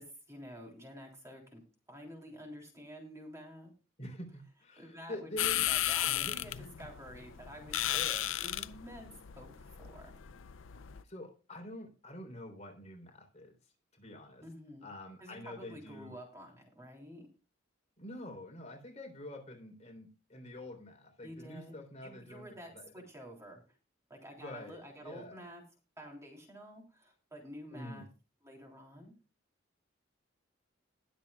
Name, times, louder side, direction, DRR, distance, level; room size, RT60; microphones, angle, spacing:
voice 1, 0.0-3.7 4.8-8.0 8.4-10.1 14.4-14.9 15.2-17.3 21.2-23.6 24.1-25.6 26.0-28.1 28.4-29.1, equal, 15° right, 0 dB, 3.4 m, -50 dB
voice 2, 4.0-5.7 6.0-6.4 7.9-8.3 11.0-13.6 13.9-14.4 14.8-16.2 18.0-23.0 24.4-25.4 27.7-28.1, left 1 dB, 35° left, 4 dB, 3.5 m, -46 dB
sound 1, 5.4-11.0, left 13 dB, 85° left, 0.5 m, -35 dB
21.0 x 7.4 x 2.3 m, 0.32 s
head